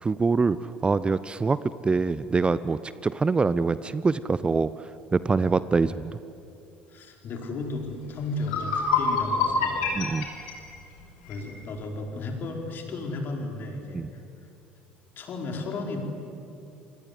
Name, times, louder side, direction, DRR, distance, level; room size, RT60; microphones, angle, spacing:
voice 1, 0.0-4.7 5.1-6.2 9.9-10.3 13.9-14.1, right 4 dB, 20° right, 16 dB, 0.7 m, -24 dB
voice 2, 6.9-9.9 11.3-14.2 15.2-16.0, left 2 dB, 45° left, 3 dB, 4.8 m, -34 dB
sound 1, 7.9-8.0 8.4-11.5, left 4 dB, 65° left, 4.8 m, -27 dB
28.0 x 25.0 x 8.2 m, 2.7 s
figure-of-eight pair, 60°, 5 cm